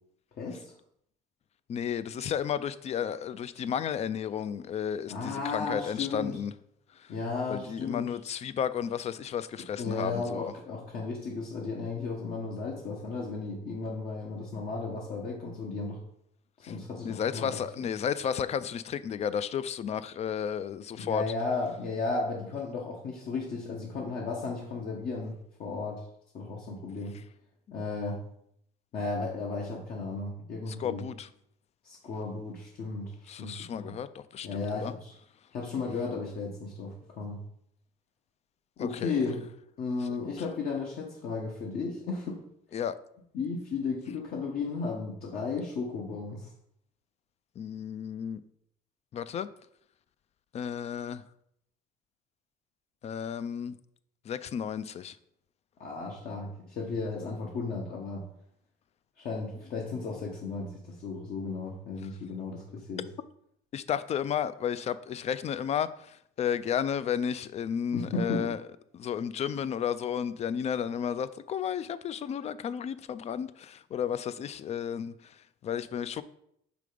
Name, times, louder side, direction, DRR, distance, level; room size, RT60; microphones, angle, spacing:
voice 1, 0.4-0.7 5.1-6.4 7.1-8.1 9.8-16.0 16.6-17.5 21.0-25.3 25.6-26.0 26.3-27.2 27.7-28.2 28.9-31.0 31.8-33.9 34.4-35.1 35.5-37.4 38.8-39.5 39.8-42.4 43.3-46.5 55.8-58.2 59.2-63.0 67.9-68.5, left 4 dB, 60° left, 1.1 m, -34 dB
voice 2, 1.7-6.5 7.0-7.1 7.5-10.5 16.6-16.7 17.0-21.3 30.7-31.3 33.3-34.9 38.8-39.1 42.7-43.0 47.6-48.4 49.1-49.5 50.5-51.2 53.0-53.8 54.3-55.2 63.7-68.6 68.9-76.2, left 8 dB, 40° left, 0.4 m, -33 dB
5.0 x 3.8 x 5.1 m
cardioid pair, 110°, 17 cm